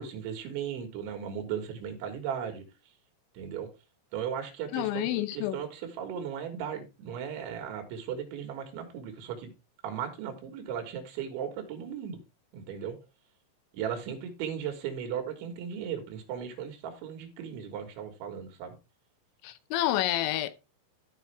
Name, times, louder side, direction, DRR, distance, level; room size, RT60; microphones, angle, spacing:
voice 1, 0.0-2.6 3.4-3.7 4.1-9.5 9.8-12.2 12.5-13.0 13.7-18.8, right 8 dB, 80° right, 4.0 m, -36 dB
voice 2, 4.7-5.6 19.4-20.5, left 14 dB, 80° left, 3.0 m, -29 dB
14.0 x 5.2 x 3.4 m
omnidirectional pair, 5.3 m